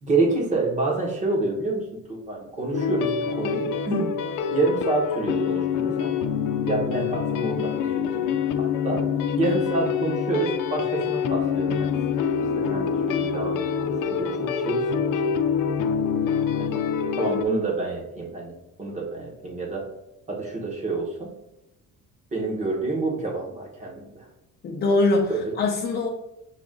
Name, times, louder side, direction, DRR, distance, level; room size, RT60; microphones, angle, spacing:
voice 1, 0.0-4.2 4.5-6.2 6.7-8.2 8.6-9.1 9.4-11.9 12.6-16.7 17.2-19.9 20.3-21.3 22.3-24.2 25.3-25.5, right 3 dB, 25° right, -1 dB, 1.1 m, -28 dB
sound 1, 2.7-17.4, left 7 dB, 90° left, 0.5 m, -26 dB
voice 2, 24.6-26.1, left 2 dB, 30° left, -1 dB, 0.5 m, -23 dB
5.9 x 2.4 x 3.7 m, 0.88 s
cardioid pair, 175°, 31 cm